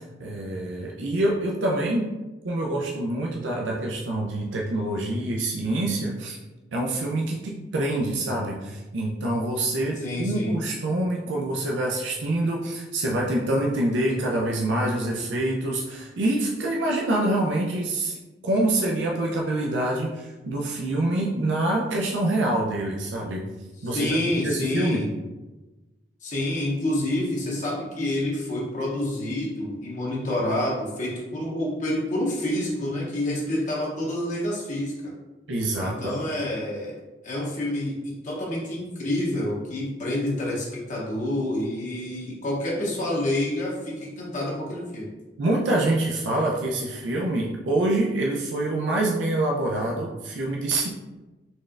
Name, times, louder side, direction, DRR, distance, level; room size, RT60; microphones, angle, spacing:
voice 1, 0.0-2.1 2.4-6.4 6.7-18.2 18.4-23.4 23.8-24.2 24.4-25.0 35.5-36.2 45.4-50.9, right 1 dB, 85° right, -2 dB, 0.5 m, -26 dB
voice 2, 10.0-10.6 23.8-25.1 26.2-35.0 35.8-37.0 37.2-45.1, left 1 dB, 45° left, -4 dB, 0.7 m, -28 dB
4.1 x 3.2 x 2.4 m, 1.1 s
head